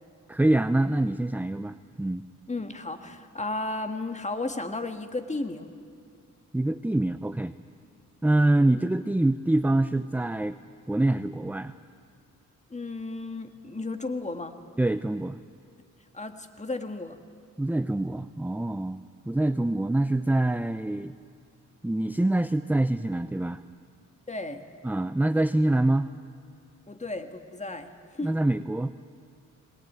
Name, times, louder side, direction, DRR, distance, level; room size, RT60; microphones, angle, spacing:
voice 1, 0.3-2.2 6.5-7.5 8.2-10.6 10.9-11.8 14.8-15.4 17.6-21.1 21.8-23.6 24.8-26.1 28.2-28.9, right 1 dB, 5° right, 12 dB, 0.5 m, -25 dB
voice 2, 2.5-5.7 12.7-14.5 16.1-17.2 24.3-24.6 26.9-28.4, left 2 dB, 20° left, 7 dB, 1.8 m, -34 dB
21.0 x 19.0 x 9.3 m, 2.3 s
cardioid pair, 70°, 31 cm